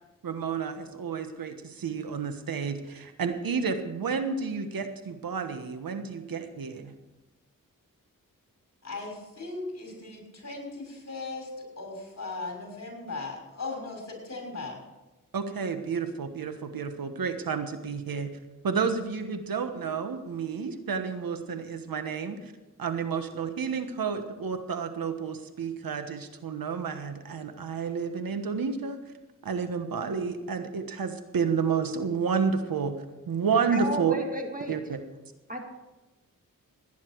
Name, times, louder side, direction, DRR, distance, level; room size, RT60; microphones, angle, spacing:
voice 1, 0.2-6.9 15.3-18.3 18.6-22.5 22.8-29.0 29.4-32.9 33.3-34.1 34.7-35.0, right 5 dB, 75° right, 8 dB, 1.3 m, -30 dB
voice 2, 8.8-14.8, left 3 dB, 50° left, 0 dB, 6.2 m, -38 dB
voice 3, 33.7-34.8 35.5-35.6, right 1 dB, 25° right, 3 dB, 2.1 m, -33 dB
18.0 x 10.0 x 4.7 m, 1.1 s
cardioid pair, 65°, 35 cm